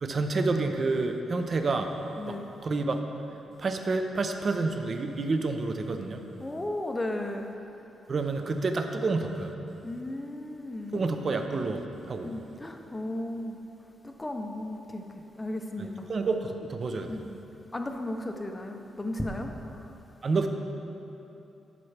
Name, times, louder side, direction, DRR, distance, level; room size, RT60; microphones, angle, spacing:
voice 1, 0.0-1.9 2.3-2.4 2.6-3.0 3.6-6.2 8.1-9.5 10.9-12.3 15.8-17.2 20.2-20.5, right 3 dB, 40° right, 5 dB, 0.5 m, -29 dB
voice 2, 6.4-7.5 9.8-11.0 12.2-13.6 14.0-15.0 15.3-16.1 17.1-17.4 17.7-19.5, left 1 dB, 15° left, 4 dB, 0.6 m, -35 dB
12.0 x 5.8 x 3.3 m, 3.0 s
cardioid pair, 135°, 0 cm